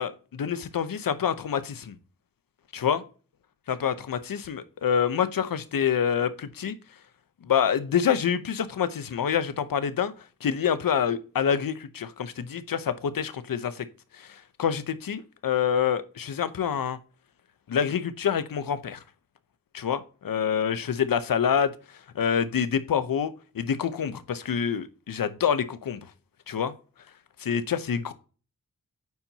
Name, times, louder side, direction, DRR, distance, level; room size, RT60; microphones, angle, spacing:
voice 1, 0.0-2.0 2.7-3.0 3.7-6.7 7.4-10.1 10.4-13.8 14.2-17.0 17.7-19.0 19.7-21.7 22.1-26.0 26.5-26.7 27.4-28.1, left 8 dB, 75° left, 0.8 m, -27 dB
9.3 x 4.5 x 2.8 m
cardioid pair, 55°, 34 cm